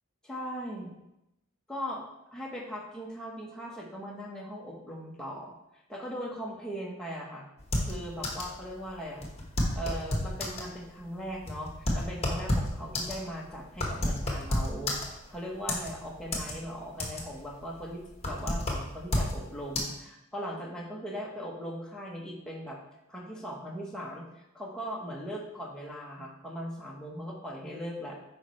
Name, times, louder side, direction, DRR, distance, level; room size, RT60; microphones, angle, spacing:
voice 1, 0.2-0.9 1.7-2.0 2.3-7.5 7.8-9.2 9.7-22.8 23.1-28.2, equal, 5° left, -4 dB, 1.1 m, -39 dB
sound 1, 7.6-8.6 8.8-8.9 9.2-10.7 11.2-15.3 15.7-16.5 16.8-17.4 17.8-19.4 19.8-19.9, left 1 dB, 30° left, 1.3 m, -30 dB
8.9 x 5.3 x 3.1 m, 0.89 s
head